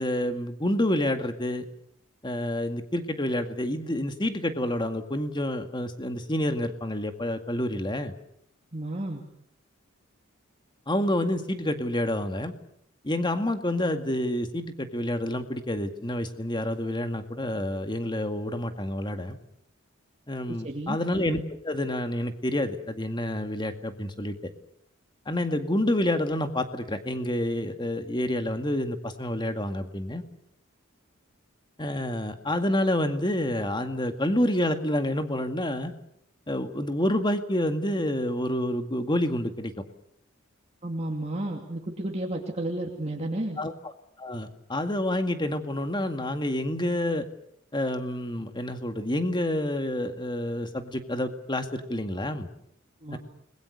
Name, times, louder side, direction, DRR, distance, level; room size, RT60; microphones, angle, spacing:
voice 1, 0.0-1.6 2.2-8.1 10.9-12.5 13.0-19.4 20.3-24.4 25.3-30.2 31.8-35.9 36.5-39.7 43.6-43.7 44.2-47.2 47.7-52.5 53.1-53.2, left 1 dB, 20° left, 7 dB, 2.0 m, -28 dB
voice 2, 8.7-9.2 20.5-21.0 40.8-43.6 53.0-53.2, right 1 dB, 30° right, 0 dB, 2.6 m, -32 dB
30.0 x 21.5 x 6.6 m, 0.70 s
head